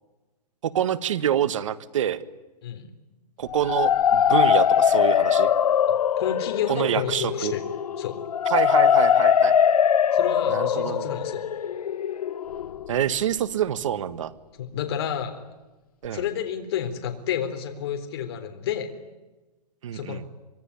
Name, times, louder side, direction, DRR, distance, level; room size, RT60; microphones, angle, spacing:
voice 1, 0.6-2.2 3.4-5.5 6.7-7.5 8.5-9.6 10.5-11.1 12.9-14.3 16.0-16.2 19.8-20.2, right 10 dB, 50° right, 13 dB, 1.7 m, -26 dB
sound 1, 3.5-13.3, left 8 dB, 65° left, 1.4 m, -22 dB
voice 2, 6.2-7.6 8.0-8.2 10.1-11.4 14.6-15.4 16.1-18.9 19.9-20.2, left 9 dB, 40° left, 5 dB, 3.9 m, -30 dB
25.5 x 23.0 x 10.0 m, 1.1 s
hypercardioid pair, 170°, 21 cm